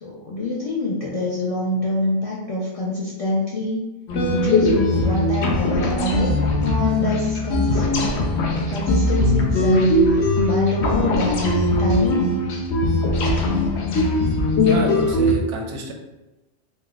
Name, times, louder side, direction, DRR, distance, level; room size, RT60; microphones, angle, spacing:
voice 1, 0.0-3.8 4.4-6.4 6.6-8.1 8.6-9.9 10.4-12.2, left 2 dB, 55° left, -6 dB, 0.4 m, -25 dB
sound 1, 4.1-15.3, left 2 dB, 70° left, 0.8 m, -20 dB
voice 2, 14.6-15.9, right 3 dB, 80° right, 2 dB, 0.9 m, -29 dB
3.8 x 2.1 x 2.3 m, 1.0 s
omnidirectional pair, 1.2 m